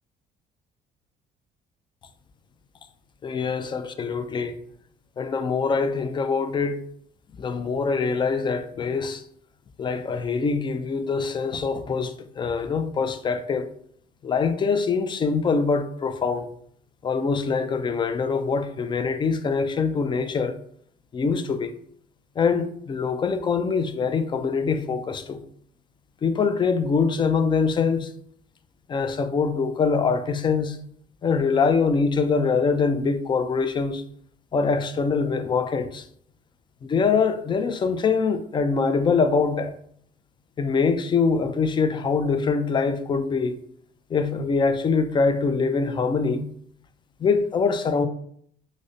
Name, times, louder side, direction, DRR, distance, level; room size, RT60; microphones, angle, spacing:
voice 1, 3.2-4.6 5.2-6.8 7.4-9.2 9.8-13.7 14.2-16.5 17.0-20.6 21.1-21.7 22.4-25.4 26.2-28.1 28.9-30.8 31.2-34.0 34.5-36.0 36.8-39.7 40.6-43.6 44.1-46.4 47.2-48.1, left 5 dB, 30° left, 0.3 m, -24 dB
4.9 x 2.1 x 2.6 m
cardioid pair, 110°, 17 cm